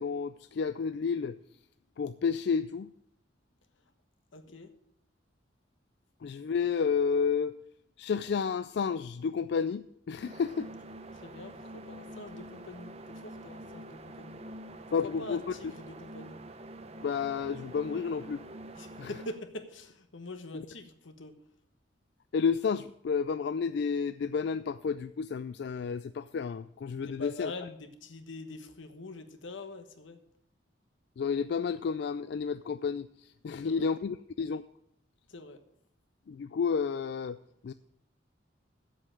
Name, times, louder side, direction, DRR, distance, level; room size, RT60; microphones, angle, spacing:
voice 1, 0.0-1.4 2.0-2.9 6.2-7.6 8.0-10.7 14.9-15.5 17.0-18.4 19.0-19.1 20.5-20.7 22.3-27.5 31.2-34.6 36.3-37.4 37.6-37.7, left 6 dB, 60° left, 13 dB, 0.3 m, -31 dB
voice 2, 4.3-4.7 11.1-14.4 14.9-16.4 18.7-21.3 27.0-30.2 33.6-33.9 35.3-35.6, left 2 dB, 80° left, 8 dB, 1.2 m, -44 dB
sound 1, 10.1-19.4, right 1 dB, 35° right, 0.6 m, -46 dB
7.7 x 7.6 x 8.5 m, 0.74 s
head